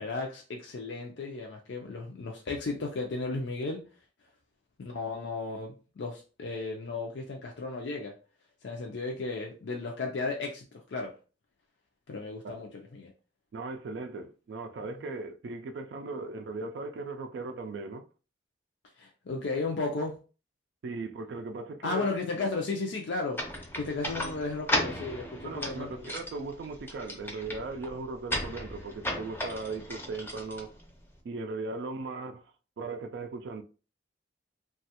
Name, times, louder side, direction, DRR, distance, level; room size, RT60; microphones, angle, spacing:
voice 1, 0.0-3.8 4.8-8.1 8.6-11.1 12.1-13.1 19.0-20.2 21.8-26.1, left 3 dB, 70° left, 0.5 m, -34 dB
voice 2, 13.5-18.1 20.8-22.1 25.4-30.8 31.2-33.6, right 3 dB, 65° right, 0.3 m, -38 dB
sound 1, 23.3-31.2, left 1 dB, 10° left, 0.5 m, -36 dB
3.0 x 2.3 x 2.8 m
head